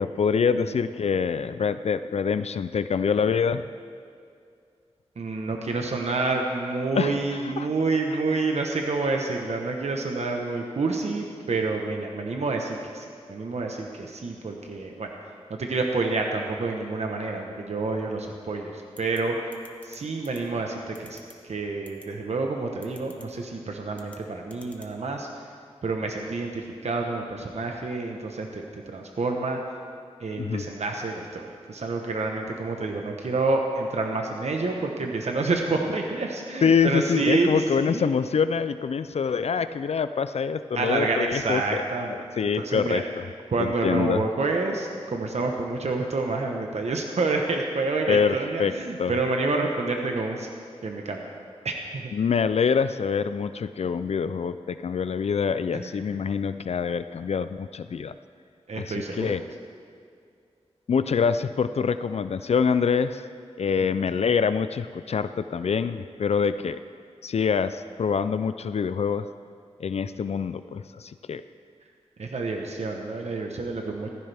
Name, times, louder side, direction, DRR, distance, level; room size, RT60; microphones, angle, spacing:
voice 1, 0.0-3.6 6.9-7.2 7.4-7.7 30.4-30.6 36.6-41.8 42.4-43.0 43.6-44.2 48.1-48.7 49.0-49.2 52.1-58.1 58.7-59.4 60.9-63.3 63.6-66.8 67.2-69.3 69.8-71.4, left 6 dB, 70° left, 12 dB, 0.4 m, -25 dB
voice 2, 5.2-15.1 15.5-19.4 19.8-25.3 25.8-29.6 30.2-38.1 40.7-42.1 42.6-43.0 43.5-50.5 50.8-51.2 51.6-52.0 55.7-55.9 58.7-59.3 63.8-63.9 72.2-74.1, right 3 dB, 75° right, 2 dB, 1.1 m, -28 dB
sound 1, 19.0-19.2 19.5-20.0 20.2-20.4 20.9-21.3 21.9-22.0 22.8-23.2 23.9-24.2 24.5-24.9, left 1 dB, 10° left, 1.2 m, -48 dB
15.0 x 14.5 x 3.5 m, 2.3 s
wide cardioid pair, 85°, 11 cm